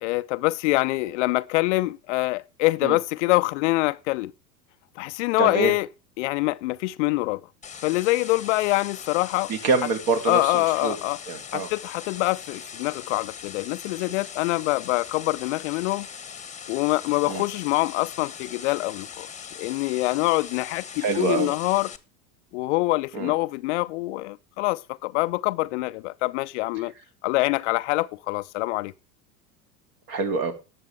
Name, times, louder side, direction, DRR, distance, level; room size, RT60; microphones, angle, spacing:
voice 1, 0.0-4.3 5.0-5.9 6.2-7.4 7.8-9.5 10.3-11.2 11.5-16.1 16.7-19.3 19.6-21.9 22.5-26.9 27.2-28.9, left 20 dB, 45° left, 0.6 m, -25 dB
voice 2, 5.4-5.7 9.5-11.0 11.3-11.7 17.3-17.4 21.0-21.5 23.1-23.3 30.1-30.5, right 4 dB, 45° right, 3.2 m, -25 dB
sound 1, 7.6-22.0, left 7 dB, 15° left, 1.3 m, -40 dB
18.5 x 7.2 x 3.4 m
figure-of-eight pair, 85°, 49 cm